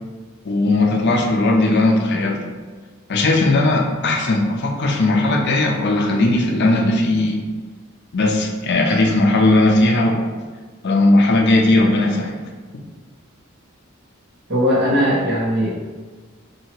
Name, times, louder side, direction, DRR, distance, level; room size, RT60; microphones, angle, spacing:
voice 1, 0.4-2.5 3.1-7.4 8.1-10.3 10.8-12.4, left 2 dB, 55° left, 2 dB, 0.5 m, -17 dB
voice 2, 14.5-15.7, equal, 55° right, -7 dB, 1.3 m, -18 dB
2.8 x 2.8 x 4.4 m, 1.4 s
head